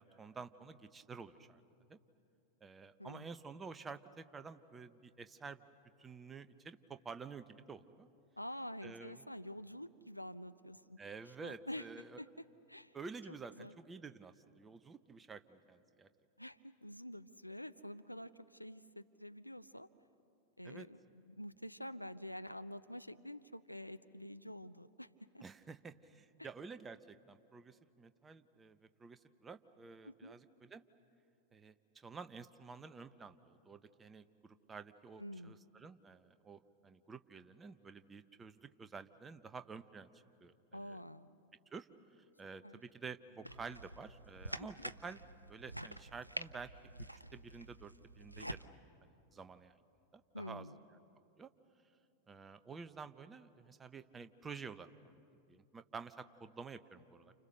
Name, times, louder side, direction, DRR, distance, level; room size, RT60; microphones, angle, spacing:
voice 1, 0.0-1.6 1.9-2.0 2.6-5.6 6.0-8.1 8.8-9.2 11.0-12.2 12.9-16.1 20.6-20.9 25.4-30.8 31.5-41.0 41.7-41.9 42.4-45.2 45.5-46.7 47.1-48.7 49.0-49.8 50.1-50.7 51.4-51.5 52.3-55.2 55.5-57.3, right 5 dB, 15° right, 11 dB, 0.9 m, -50 dB
voice 2, 3.0-3.3 8.4-11.0 11.4-11.9 12.2-12.9 13.3-13.7 16.4-19.9 20.6-25.1 25.3-25.4 26.4-26.5 30.0-30.3 35.2-35.6 40.7-41.3 42.6-42.8 44.6-44.7 50.3-50.8, left 1 dB, 90° left, 12 dB, 0.6 m, -48 dB
sound 1, 43.4-48.6, right 1 dB, 90° right, 0.6 m, -47 dB
29.5 x 29.5 x 6.7 m, 2.7 s
figure-of-eight pair, 90°, 0 cm